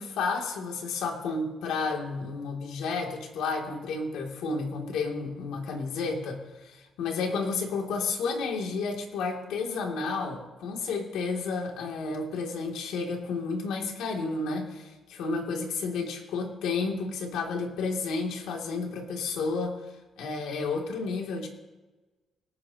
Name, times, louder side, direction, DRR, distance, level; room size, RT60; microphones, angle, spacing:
voice 1, 0.0-19.8 20.2-21.5, left 4 dB, 85° left, 1 dB, 2.7 m, -31 dB
26.0 x 10.0 x 3.0 m, 1.2 s
cardioid pair, 90°, 0 cm